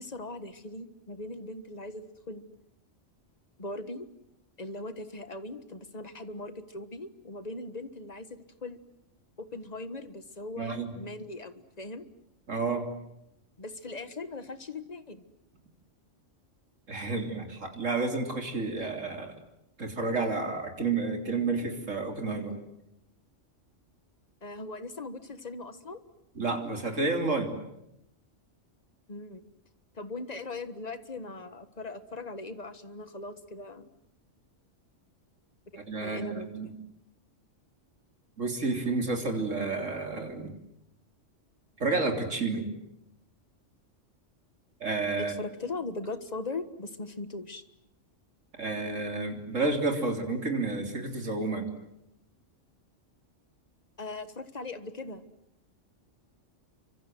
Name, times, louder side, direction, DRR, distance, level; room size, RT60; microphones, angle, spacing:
voice 1, 0.0-2.4 3.6-4.1 4.6-8.3 8.6-8.8 9.4-12.0 13.6-15.2 24.4-26.0 29.1-29.4 29.9-33.9 36.0-36.8 45.3-47.6 54.0-55.2, left 2 dB, 35° left, 11 dB, 1.6 m, -39 dB
voice 2, 10.6-10.9 12.5-12.9 16.9-19.4 19.8-22.6 26.4-27.5 35.9-36.7 38.4-40.5 41.8-42.7 44.8-45.3 48.6-51.7, right 3 dB, 80° right, 4 dB, 3.8 m, -30 dB
29.0 x 25.0 x 7.8 m, 0.84 s
omnidirectional pair, 1.3 m